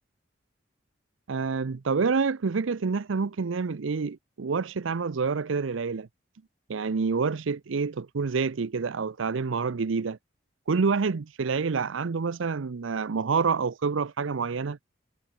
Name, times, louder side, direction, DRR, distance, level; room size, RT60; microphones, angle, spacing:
voice 1, 1.3-6.1 6.7-10.2 10.7-14.8, right 5 dB, 85° right, 0.6 m, -27 dB
head